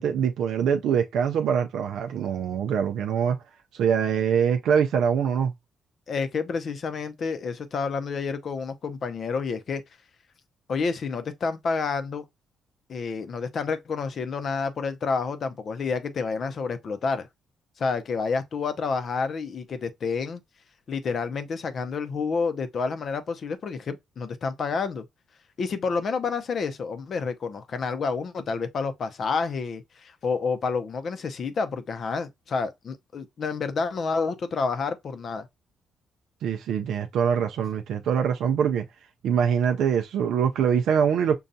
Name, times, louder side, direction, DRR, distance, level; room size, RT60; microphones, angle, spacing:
voice 1, 0.0-3.4 3.7-5.5 36.4-38.8 39.2-41.4, right 7 dB, 75° right, 0.4 m, -24 dB
voice 2, 6.1-9.8 10.7-12.2 12.9-17.3 17.8-20.4 20.9-25.0 25.6-35.5, left 4 dB, 55° left, 0.6 m, -29 dB
5.4 x 2.3 x 2.6 m
cardioid pair, 90°, 0 cm